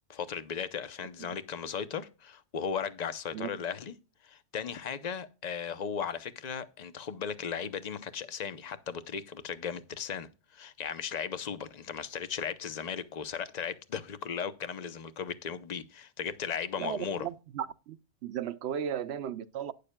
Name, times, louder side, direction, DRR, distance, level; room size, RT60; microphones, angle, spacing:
voice 1, 0.1-3.9 4.2-17.3, left 7 dB, 40° left, 0.7 m, -36 dB
voice 2, 16.8-18.0 18.2-19.7, right 9 dB, 70° right, 0.8 m, -35 dB
11.5 x 9.9 x 2.2 m
omnidirectional pair, 1.2 m